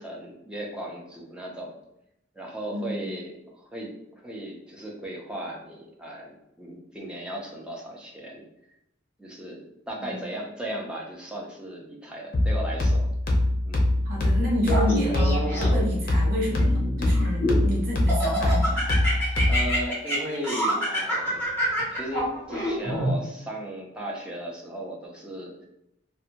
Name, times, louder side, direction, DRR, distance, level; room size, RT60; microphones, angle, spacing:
voice 1, 0.0-1.8 2.3-8.4 9.2-13.1 13.6-13.9 19.5-21.4 21.9-25.6, right 1 dB, 5° right, -2 dB, 0.5 m, -36 dB
voice 2, 2.7-3.1 10.0-10.2 14.0-18.9, equal, 50° right, -4 dB, 0.8 m, -30 dB
sound 1, 12.3-19.8, left 1 dB, 50° left, 0.6 m, -24 dB
Laughter, 14.6-16.0 16.6-17.6 18.1-23.1, equal, 10° left, 0.9 m, -27 dB
2.6 x 2.1 x 2.7 m, 0.79 s
head